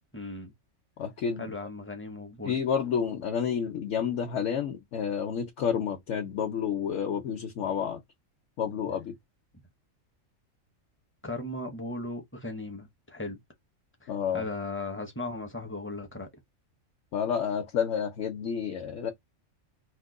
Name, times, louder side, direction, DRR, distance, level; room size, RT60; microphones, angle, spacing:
voice 1, 0.1-0.5 1.4-2.6 11.2-13.4 14.0-16.3, left 2 dB, 15° left, 0.5 m, -37 dB
voice 2, 1.0-1.4 2.4-8.0 8.6-9.1 14.1-14.4 17.1-19.1, left 7 dB, 65° left, 1.0 m, -30 dB
2.9 x 2.2 x 3.6 m
omnidirectional pair, 1.4 m